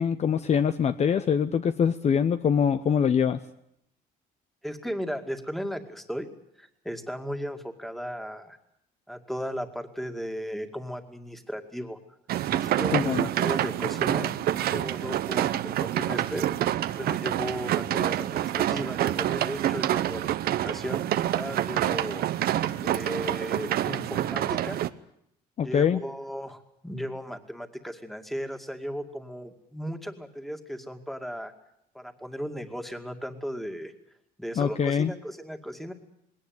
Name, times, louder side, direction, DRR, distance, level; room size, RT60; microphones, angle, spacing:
voice 1, 0.0-3.4 12.9-13.3 25.6-26.0 34.6-35.1, left 7 dB, 40° left, 10 dB, 0.8 m, -24 dB
voice 2, 4.6-6.3 6.6-8.6 9.1-12.0 12.5-14.3 14.7-16.7 17.0-21.0 21.3-22.3 22.8-24.8 25.6-31.5 31.9-33.9 34.4-35.9, equal, ahead, 6 dB, 2.2 m, -36 dB
sound 1, 12.3-24.9, right 12 dB, 65° right, 0.9 m, -27 dB
20.0 x 18.0 x 9.5 m, 0.77 s
cardioid pair, 110°, 17 cm